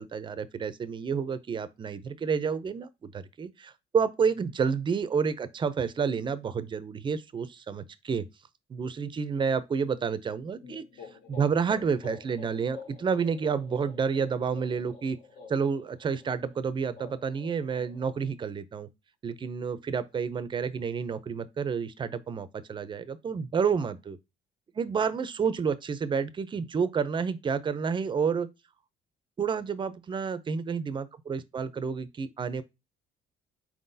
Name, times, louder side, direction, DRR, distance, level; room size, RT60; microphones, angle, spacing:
voice 1, 0.0-8.2 8.7-10.8 11.3-15.2 15.5-18.9 19.2-24.2 24.7-28.5 29.4-32.6, right 6 dB, 30° right, 0.5 m, -30 dB
sound 1, 10.6-18.3, left 4 dB, 65° left, 1.2 m, -48 dB
4.5 x 3.8 x 2.6 m
cardioid pair, 110°, 17 cm